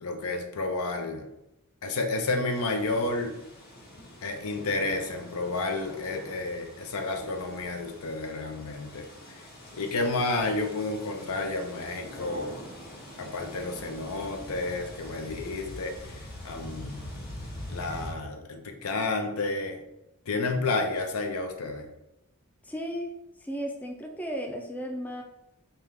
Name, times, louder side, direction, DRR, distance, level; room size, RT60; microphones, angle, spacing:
voice 1, 0.0-1.3 1.8-3.4 4.2-9.4 9.7-12.5 13.2-16.2 16.4-17.0 17.7-19.8 20.3-21.9, left 3 dB, 70° left, 4 dB, 0.6 m, -31 dB
sound 1, 2.5-18.1, left 1 dB, 45° left, 1.1 m, -44 dB
voice 2, 22.6-23.1 23.4-25.2, equal, 5° left, 1 dB, 0.4 m, -34 dB
3.4 x 2.8 x 3.5 m, 0.87 s
head